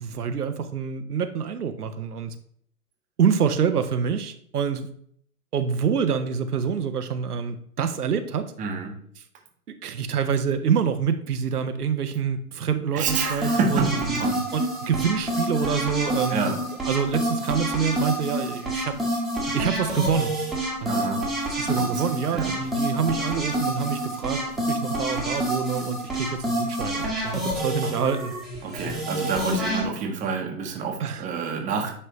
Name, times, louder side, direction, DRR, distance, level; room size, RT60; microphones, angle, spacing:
voice 1, 0.0-2.3 3.2-4.9 5.5-8.5 9.7-13.9 14.5-16.4 16.8-19.0 19.5-20.4 20.8-21.0 21.5-24.4 24.7-28.3 31.0-31.2, right 7 dB, 85° right, 8 dB, 0.8 m, -26 dB
voice 2, 8.6-9.0 12.9-14.4 15.6-15.8 16.3-16.6 20.9-21.3 21.8-22.0 22.3-22.6 27.8-28.0 28.6-31.9, right 5 dB, 15° right, 1 dB, 1.1 m, -28 dB
sound 1, 13.1-29.8, right 1 dB, ahead, 1.3 m, -28 dB
9.8 x 3.3 x 3.1 m, 0.63 s
hypercardioid pair, 125°, 44 cm